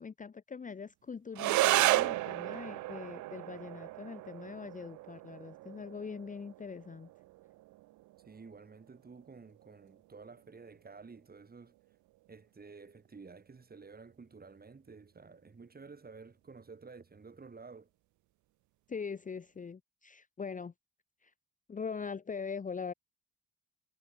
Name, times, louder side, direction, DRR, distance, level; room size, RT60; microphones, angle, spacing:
voice 1, 0.0-7.1 18.9-20.7 21.2-21.3 21.7-22.9, left 5 dB, 25° left, 0.8 m, -42 dB
sound 1, 1.3-10.3, right 18 dB, 75° right, 0.4 m, -34 dB
voice 2, 8.2-11.7 12.3-17.9, right 4 dB, 30° right, 6.3 m, -52 dB
cardioid pair, 90°, 30 cm